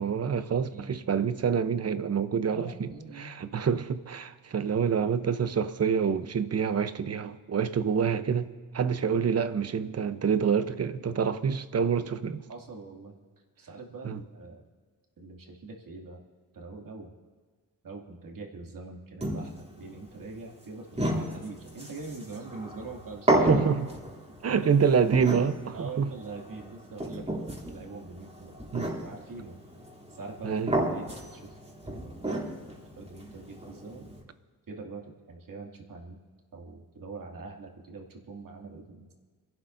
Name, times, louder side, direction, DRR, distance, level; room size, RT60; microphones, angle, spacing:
voice 1, 0.0-2.9 3.2-12.4 14.0-14.2 23.5-23.9 24.4-26.1 28.7-28.9 30.4-30.7, right 6 dB, 40° right, 0.9 m, -27 dB
voice 2, 2.5-3.3 12.5-13.2 13.6-14.6 15.2-16.2 16.5-17.1 17.8-23.7 24.5-24.8 25.7-28.6 29.0-29.6 30.1-30.6 30.9-31.6 31.8-32.5 33.0-34.1 34.7-35.0 35.3-36.2 36.5-39.2, right 3 dB, 60° right, 2.5 m, -43 dB
sound 1, 19.2-34.2, right 1 dB, 15° right, 3.1 m, -33 dB
27.5 x 12.0 x 2.7 m
cardioid pair, 75°, 37 cm